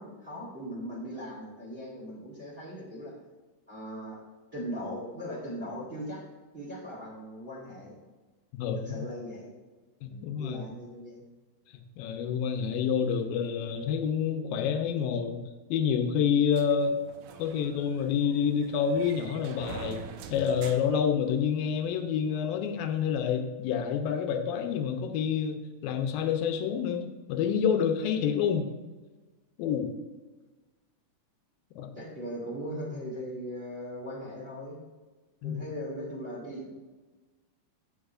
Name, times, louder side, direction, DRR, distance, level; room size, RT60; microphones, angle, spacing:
voice 1, 0.0-3.1 3.7-4.2 4.5-6.3 6.5-8.0 8.8-9.5 10.1-11.2 32.0-34.8 35.4-36.7, equal, 20° right, -6 dB, 1.8 m, -39 dB
voice 2, 8.5-9.1 10.0-10.6 12.0-15.4 15.7-17.0 17.4-20.0 20.3-28.7 29.6-29.9 31.8-31.9 35.4-35.6, left 7 dB, 85° left, 5 dB, 2.6 m, -28 dB
sound 1, 16.5-21.8, right 7 dB, 80° right, 1.9 m, -45 dB
16.0 x 5.8 x 2.5 m, 1.2 s
omnidirectional pair, 4.1 m